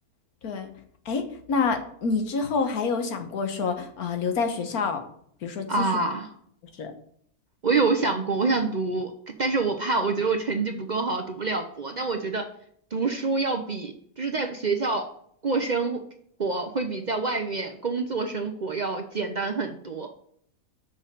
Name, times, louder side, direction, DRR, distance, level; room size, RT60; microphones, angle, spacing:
voice 1, 1.0-5.0 5.4-5.9 6.8-6.9, left 4 dB, 90° left, 6 dB, 1.6 m, -27 dB
voice 2, 5.7-6.3 7.6-9.1 9.4-12.5 12.9-15.1 15.4-16.0 16.4-20.1, right 3 dB, 40° right, 5 dB, 0.6 m, -26 dB
6.3 x 6.2 x 6.6 m, 0.65 s
omnidirectional pair, 1.5 m